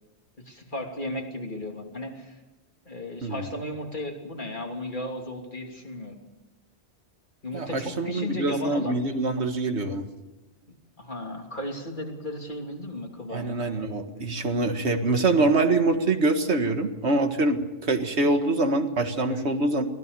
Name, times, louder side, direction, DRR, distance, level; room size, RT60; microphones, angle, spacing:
voice 1, 0.4-2.4 2.8-6.2 7.4-9.1 11.0-13.6 19.3-19.6, left 1 dB, 50° left, 1 dB, 3.3 m, -35 dB
voice 2, 7.5-10.0 13.3-19.9, right 2 dB, 85° right, 6 dB, 2.0 m, -24 dB
23.5 x 17.5 x 6.9 m, 1.1 s
omnidirectional pair, 1.1 m